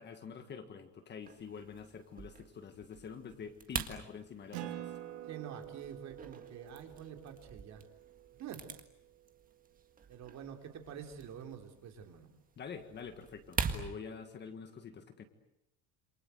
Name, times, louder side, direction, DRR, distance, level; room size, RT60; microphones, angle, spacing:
voice 1, 0.0-4.9 12.6-15.2, left 6 dB, 25° left, 8 dB, 1.7 m, -47 dB
sound 1, 1.2-13.8, right 6 dB, 20° right, 1.7 m, -45 dB
Acoustic guitar, 4.5-9.5, right 13 dB, 85° right, 3.4 m, -48 dB
voice 2, 5.3-7.9 8.4-8.7 10.1-12.3, right 8 dB, 40° right, 5 dB, 3.5 m, -47 dB
28.0 x 27.0 x 7.9 m, 0.80 s
cardioid pair, 180°, 41 cm